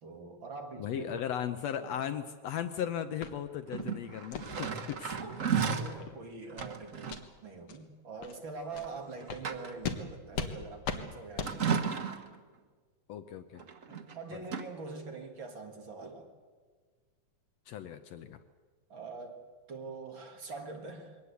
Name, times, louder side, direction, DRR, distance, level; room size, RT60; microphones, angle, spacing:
voice 1, 0.0-1.3 1.8-1.9 5.2-7.1 7.4-11.8 13.9-16.3 18.9-19.4 19.7-21.2, right 4 dB, 45° right, 3 dB, 2.3 m, -44 dB
voice 2, 0.8-5.2 13.1-13.6 17.7-18.4, left 9 dB, 70° left, 9 dB, 1.8 m, -37 dB
sound 1, 3.2-3.3 3.7-3.9 4.3-4.5 4.9-5.0 5.4-5.5 5.9-6.1 6.6-6.7 7.0-7.2 7.7-7.8 8.2-8.3 8.7-8.9 9.3-9.4 9.8-10.0 10.3-10.5 10.8-11.0 11.4-11.5, left 6 dB, 55° left, 2.1 m, -37 dB
sound 2, 3.7-6.0 6.5-7.3 8.7-8.9 9.2-10.0 11.4-12.4 13.6-14.2 14.4-14.6, right 6 dB, 80° right, 0.7 m, -34 dB
22.5 x 18.5 x 8.3 m, 1.5 s
omnidirectional pair, 3.4 m